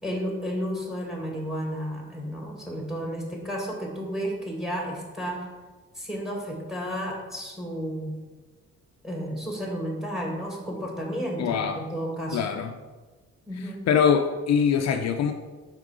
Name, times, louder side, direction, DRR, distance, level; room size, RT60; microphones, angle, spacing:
voice 1, 0.0-5.5 5.9-8.1 9.0-12.5 13.5-13.9, equal, ahead, 0 dB, 1.7 m, -32 dB
voice 2, 11.4-11.8 12.3-12.7 13.9-15.3, left 7 dB, 60° left, 6 dB, 0.5 m, -23 dB
5.2 x 4.6 x 4.8 m, 1.3 s
cardioid pair, 90°, 30 cm